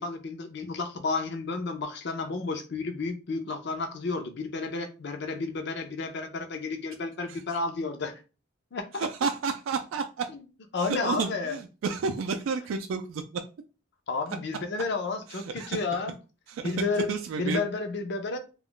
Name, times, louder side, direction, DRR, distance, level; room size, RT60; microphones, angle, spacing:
voice 1, 0.0-8.2 8.7-9.1 10.7-11.6 14.1-16.1 16.6-17.1 17.4-18.4, left 3 dB, 55° left, 0.5 m, -31 dB
voice 2, 8.9-10.3 10.8-13.4 15.3-15.8 16.5-16.8 17.1-17.6, right 5 dB, 75° right, 0.3 m, -31 dB
2.3 x 2.0 x 3.6 m
head